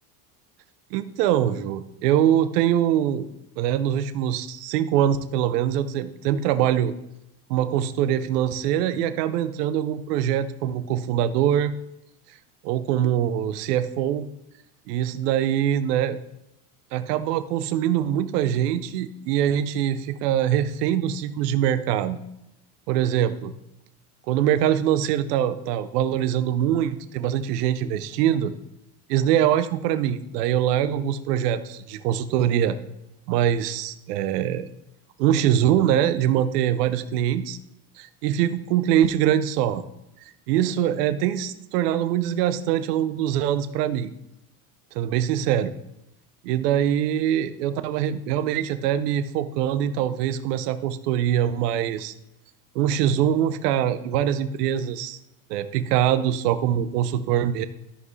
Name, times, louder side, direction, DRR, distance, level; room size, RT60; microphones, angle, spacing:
voice 1, 0.9-3.3 3.6-6.9 7.5-11.7 12.6-14.3 14.9-16.2 16.9-22.2 22.9-23.5 24.3-28.5 29.1-32.8 33.3-34.7 35.2-37.6 38.0-39.8 40.5-44.1 44.9-45.7 46.4-52.1 52.7-55.2 55.5-57.7, right 10 dB, 85° right, 12 dB, 0.7 m, -23 dB
13.5 x 5.4 x 3.2 m, 0.84 s
supercardioid pair, 110°, 46 cm